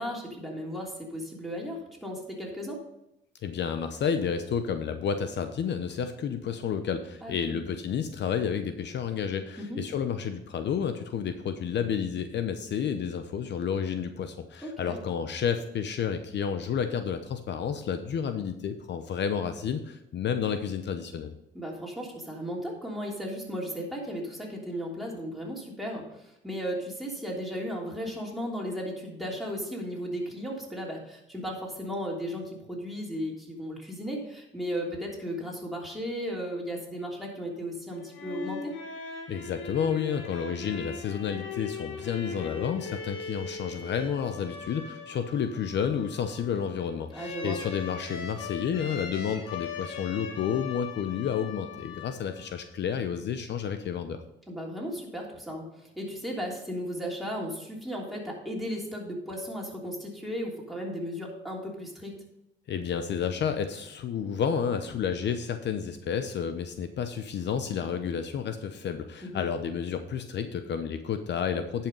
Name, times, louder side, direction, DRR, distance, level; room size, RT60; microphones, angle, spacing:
voice 1, 0.0-2.8 7.2-7.6 9.6-9.8 14.6-15.0 21.5-38.7 47.1-47.6 54.5-62.2 69.2-69.5, equal, ahead, -2 dB, 3.2 m, -35 dB
voice 2, 3.4-21.3 39.3-54.2 62.7-71.9, left 7 dB, 60° left, 8 dB, 0.8 m, -31 dB
sound 1, 37.9-52.5, left 5 dB, 80° left, 1.5 m, -40 dB
10.5 x 5.8 x 5.3 m, 0.86 s
cardioid pair, 90°, 20 cm